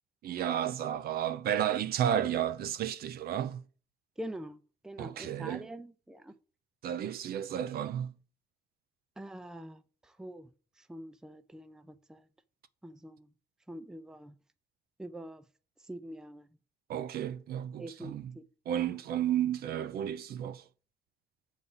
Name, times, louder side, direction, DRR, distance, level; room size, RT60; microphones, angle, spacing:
voice 1, 0.2-3.6 5.0-5.7 6.8-8.1 16.9-18.3 18.7-20.6, right 10 dB, 65° right, 0.6 m, -32 dB
voice 2, 4.2-6.3 9.2-10.5 10.8-12.3 12.8-13.3 13.7-14.3 15.0-15.4 15.8-16.5 17.8-18.4, right 1 dB, 5° right, 0.4 m, -45 dB
8.2 x 4.1 x 7.0 m
cardioid pair, 160°, 17 cm